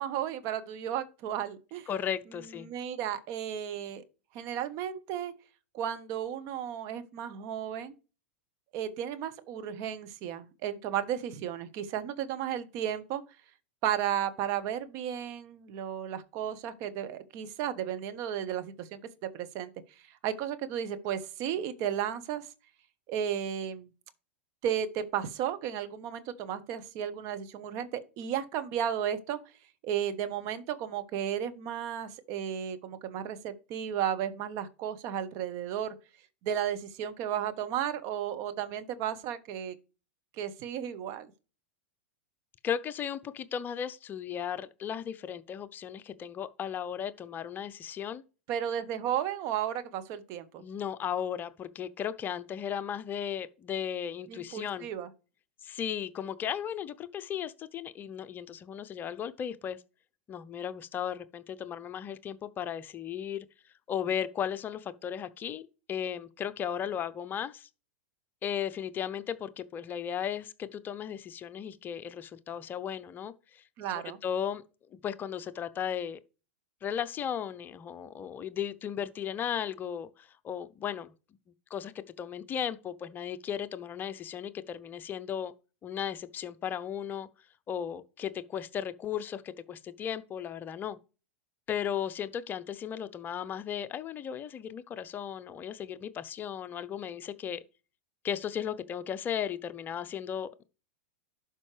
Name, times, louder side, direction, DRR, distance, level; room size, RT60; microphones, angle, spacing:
voice 1, 0.0-1.9 2.3-4.0 4.3-5.3 5.7-7.9 8.7-13.2 13.8-19.0 19.3-19.7 20.2-22.5 23.1-23.9 24.6-29.4 29.8-35.9 36.4-39.7 40.4-41.3 48.5-50.6 54.3-55.1 73.8-74.2, right 10 dB, 45° right, 1.2 m, -34 dB
voice 2, 1.9-2.7 42.6-48.2 50.6-54.9 55.6-59.8 60.3-63.5 63.9-67.7 68.4-73.6 74.2-74.6 75.0-76.2 76.8-81.1 81.7-85.5 85.8-87.3 87.7-91.0 91.7-97.6 98.2-100.6, left 9 dB, 30° left, 0.6 m, -36 dB
11.5 x 5.3 x 3.4 m
hypercardioid pair, 105°, 7 cm